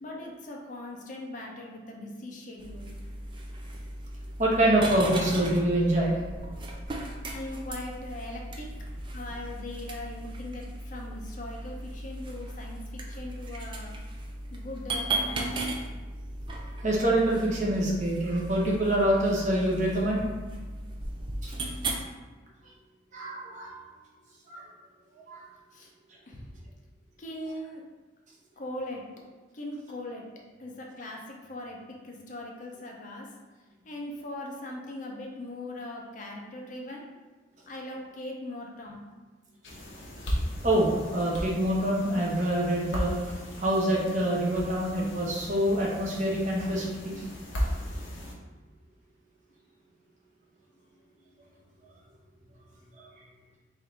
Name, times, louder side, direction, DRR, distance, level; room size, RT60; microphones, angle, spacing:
voice 1, 0.0-2.9 7.3-8.7 9.1-13.9 14.5-15.7 25.7-25.9 26.3-26.4 27.2-27.8 28.6-29.0 29.5-30.3 30.6-31.8 32.0-33.3 33.9-37.0 37.7-39.0, left 1 dB, 45° left, -1 dB, 0.6 m, -40 dB
sound 1, 2.6-22.0, right 2 dB, 25° right, 0.4 m, -37 dB
voice 2, 4.4-6.2 6.9-7.1 16.8-20.2 21.4-21.5 23.1-23.7 24.5-24.6 25.3-25.4 40.6-47.2 53.0-53.1, right 1 dB, 40° right, -3 dB, 0.9 m, -26 dB
sound 2, 39.6-48.3, equal, 75° left, 0.9 m, -36 dB
3.6 x 2.6 x 4.4 m, 1.3 s
head